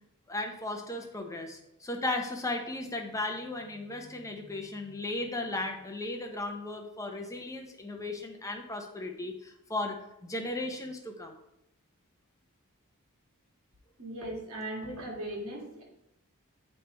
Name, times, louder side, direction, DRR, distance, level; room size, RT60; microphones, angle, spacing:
voice 1, 0.3-9.9 10.2-11.3, left 2 dB, 15° left, 3 dB, 0.8 m, -36 dB
voice 2, 14.0-15.8, right 1 dB, 65° right, -2 dB, 2.1 m, -38 dB
8.3 x 3.3 x 4.5 m, 0.82 s
head